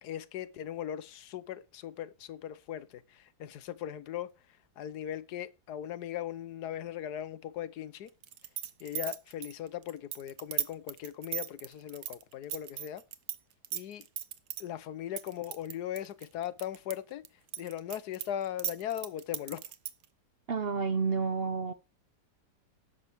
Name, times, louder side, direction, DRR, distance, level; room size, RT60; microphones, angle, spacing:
voice 1, 0.0-4.3 4.8-8.1 8.8-13.0 13.7-14.1 14.6-17.2 17.6-19.6, left 11 dB, 75° left, 1.4 m, -39 dB
sound 1, 8.2-13.4 13.6-14.6 15.2-16.9 17.3-20.1, right 11 dB, 80° right, 1.4 m, -36 dB
voice 2, 20.5-21.7, right 5 dB, 45° right, 0.9 m, -30 dB
13.0 x 11.0 x 3.5 m
omnidirectional pair, 1.7 m